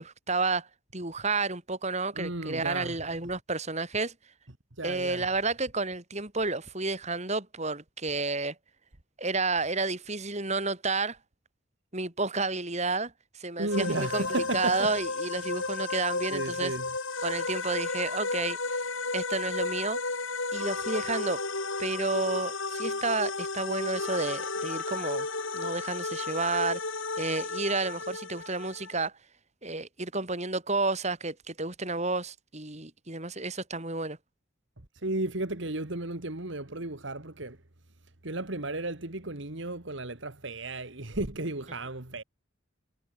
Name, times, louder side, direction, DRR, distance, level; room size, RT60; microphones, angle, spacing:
voice 1, 0.0-4.1 4.8-8.6 9.2-11.2 11.9-14.3 14.5-16.7 17.2-18.8 19.1-20.0 20.5-21.4 21.8-25.3 25.5-26.8 27.2-29.1 29.6-34.2, right 3 dB, 35° right, 3.8 m, -31 dB
voice 2, 2.1-3.0 4.8-5.3 13.6-14.9 15.4-15.6 16.3-16.9 34.9-37.6 38.2-42.2, right 2 dB, 60° right, 2.1 m, -34 dB
sound 1, 13.7-29.1, left 3 dB, 70° left, 4.7 m, -33 dB
head